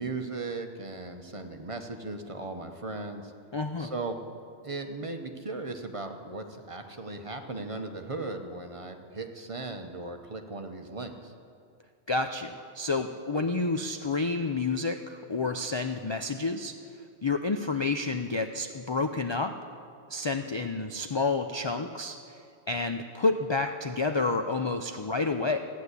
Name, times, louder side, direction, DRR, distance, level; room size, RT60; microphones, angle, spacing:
voice 1, 0.0-3.3 3.8-4.2 4.6-11.3, right 3 dB, 30° right, 5 dB, 0.9 m, -37 dB
voice 2, 3.5-3.9 12.1-16.7 17.2-19.5 20.1-22.4 22.7-25.6, left 3 dB, 40° left, 6 dB, 0.4 m, -29 dB
14.5 x 9.4 x 8.2 m, 2.3 s
omnidirectional pair, 1.1 m